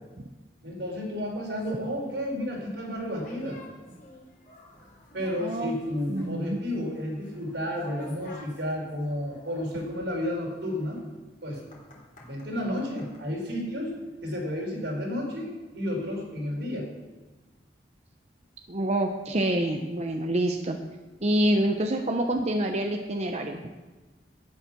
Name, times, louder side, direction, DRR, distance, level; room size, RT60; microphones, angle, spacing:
voice 1, 0.6-3.6 5.1-11.0 11.4-11.6 12.2-13.9 14.2-16.9, left 1 dB, 85° right, -1 dB, 4.3 m, -32 dB
sound 1, 1.6-13.2, left 1 dB, 45° left, 3.6 m, -50 dB
voice 2, 5.4-5.7 6.1-6.6 18.7-20.8 21.2-23.6, right 1 dB, 40° right, 4 dB, 0.8 m, -26 dB
12.5 x 9.8 x 6.0 m, 1.2 s
head